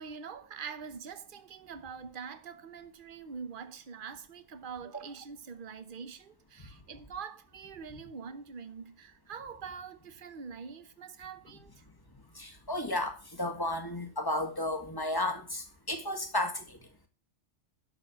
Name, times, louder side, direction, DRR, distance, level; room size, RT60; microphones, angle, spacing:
voice 1, 0.0-11.8, right 6 dB, 50° right, 1.1 m, -44 dB
voice 2, 12.4-16.8, left 1 dB, 20° left, 1.8 m, -33 dB
12.0 x 4.6 x 7.0 m
omnidirectional pair, 1.2 m